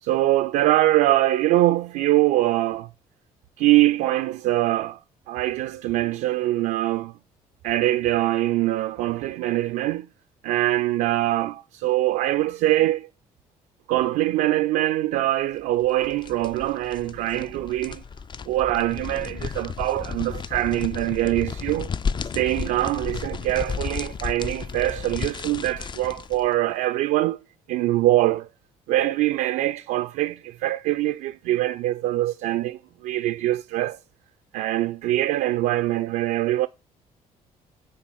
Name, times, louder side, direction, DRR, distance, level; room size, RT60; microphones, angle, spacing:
voice 1, 0.0-2.9 3.6-5.0 5.3-7.1 7.6-10.1 10.4-13.1 13.9-18.0 18.5-21.9 22.2-27.4 27.7-28.5 28.9-34.0 34.5-36.7, right 15 dB, 55° right, 0.4 m, -23 dB
sound 1, 15.8-26.5, left 6 dB, 25° left, 0.4 m, -33 dB
9.0 x 4.0 x 5.6 m
figure-of-eight pair, 45°, 19 cm